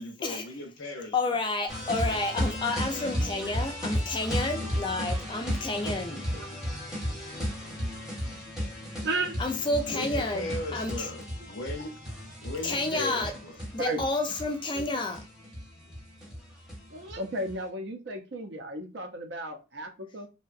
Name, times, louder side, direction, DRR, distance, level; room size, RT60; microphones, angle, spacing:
voice 1, 0.0-1.2 1.9-2.0 9.8-11.9 12.4-13.6, left 2 dB, 70° left, 0.6 m, -37 dB
voice 2, 1.1-6.2 9.4-11.1 12.6-13.3 13.7-15.2, left 2 dB, 25° left, 0.3 m, -30 dB
sound 1, 1.7-17.5, equal, ahead, 0.7 m, -34 dB
voice 3, 5.8-6.6 9.0-9.4 12.9-13.1 13.8-14.0 14.7-15.0 16.9-20.3, right 1 dB, 60° right, 0.5 m, -35 dB
2.6 x 2.2 x 2.3 m
head